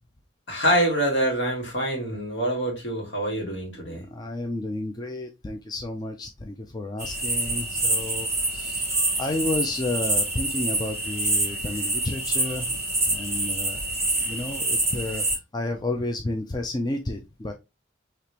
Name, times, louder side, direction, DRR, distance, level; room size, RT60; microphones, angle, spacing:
voice 1, 0.5-4.1, right 1 dB, 65° left, 1.8 m, -25 dB
voice 2, 3.8-8.9 9.2-12.8 13.1-13.8 14.2-15.2 15.5-17.5, left 2 dB, 20° left, 0.4 m, -31 dB
sound 1, 7.0-15.4, right 2 dB, 15° right, 2.3 m, -26 dB
5.0 x 2.9 x 2.8 m
head